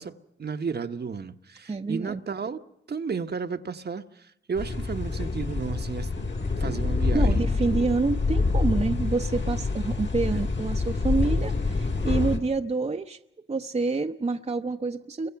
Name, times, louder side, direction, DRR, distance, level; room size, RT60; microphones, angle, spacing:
voice 1, 0.0-2.6 2.9-6.3 6.6-7.4 10.2-10.5, right 5 dB, 55° right, 1.1 m, -33 dB
voice 2, 1.7-2.2 7.1-13.2 13.5-15.3, right 3 dB, 30° right, 0.8 m, -27 dB
sound 1, 4.6-12.4, left 3 dB, 60° left, 2.8 m, -26 dB
29.0 x 23.5 x 5.8 m
cardioid pair, 60°, 20 cm